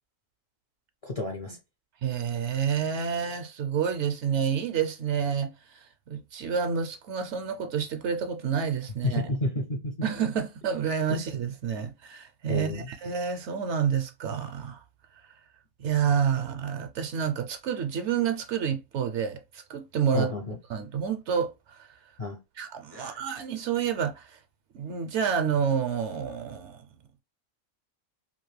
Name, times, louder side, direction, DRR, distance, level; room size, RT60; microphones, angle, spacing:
voice 1, 1.0-1.6 9.0-9.9 11.1-11.2 12.5-12.8 20.1-20.6 22.2-22.4 22.9-23.2, left 2 dB, 40° left, 0.5 m, -30 dB
voice 2, 2.0-9.2 10.0-14.8 15.8-20.3 20.7-21.5 22.6-24.4 24.7-26.8, right 7 dB, 70° right, 0.8 m, -29 dB
2.9 x 2.6 x 3.1 m
omnidirectional pair, 1.4 m